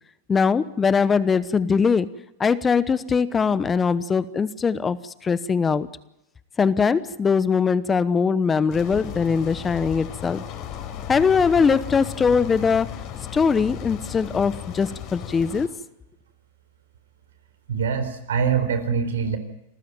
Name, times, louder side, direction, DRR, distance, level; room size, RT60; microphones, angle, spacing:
voice 1, 0.3-2.1 2.4-5.9 6.6-10.4 11.1-12.9 13.3-15.7, left 5 dB, 20° left, 15 dB, 1.0 m, -21 dB
sound 1, 8.7-15.7, left 9 dB, 45° left, 4.2 m, -35 dB
voice 2, 17.7-19.4, right 6 dB, 80° right, 10 dB, 4.1 m, -24 dB
27.0 x 15.0 x 8.9 m, 0.86 s
hypercardioid pair, 110°, 0 cm